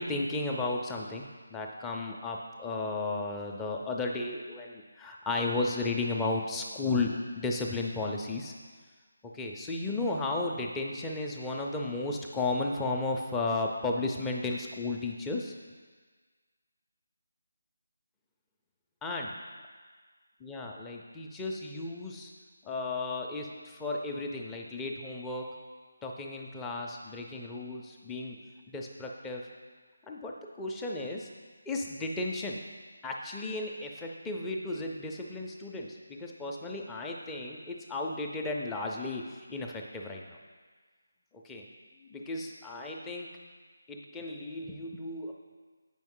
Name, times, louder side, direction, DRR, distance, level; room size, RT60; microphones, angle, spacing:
voice 1, 0.0-8.5 9.2-15.5 19.0-19.3 20.4-22.3 22.6-25.5 26.0-28.4 28.7-29.4 30.0-31.3 31.7-32.6 33.0-40.4 41.4-41.7 42.1-43.3 43.9-45.3, left 2 dB, 10° left, 0 dB, 0.4 m, -34 dB
7.7 x 5.3 x 3.7 m, 1.5 s
figure-of-eight pair, 165°, 0 cm